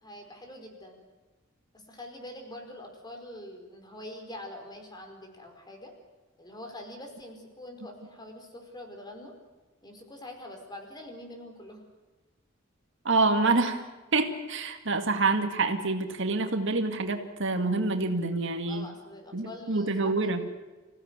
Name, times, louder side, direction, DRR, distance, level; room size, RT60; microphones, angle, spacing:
voice 1, 0.0-1.0 1.7-5.9 6.4-9.3 9.8-11.8 18.7-20.4, left 1 dB, 20° left, 4 dB, 4.8 m, -44 dB
voice 2, 13.0-13.8 14.1-18.9 19.3-20.4, right 3 dB, 65° right, 6 dB, 2.1 m, -27 dB
26.5 x 16.5 x 9.8 m, 1.2 s
head